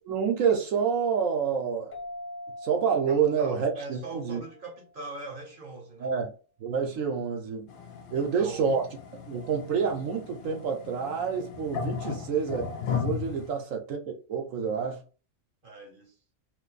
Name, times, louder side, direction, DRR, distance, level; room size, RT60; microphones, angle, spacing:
voice 1, 0.1-1.9 2.6-4.4 6.0-6.3 6.6-7.7 8.1-8.8 9.3-12.6 12.9-15.0, right 6 dB, 70° right, 1.1 m, -28 dB
sound 1, 1.9-5.2, left 1 dB, 10° left, 0.6 m, -44 dB
voice 2, 3.1-6.2 8.1-8.6 12.0-12.4 13.5-13.6 15.6-16.2, right 3 dB, 45° right, 0.9 m, -41 dB
sound 2, 7.7-13.5, left 7 dB, 75° left, 0.5 m, -36 dB
2.6 x 2.6 x 3.9 m
omnidirectional pair, 1.5 m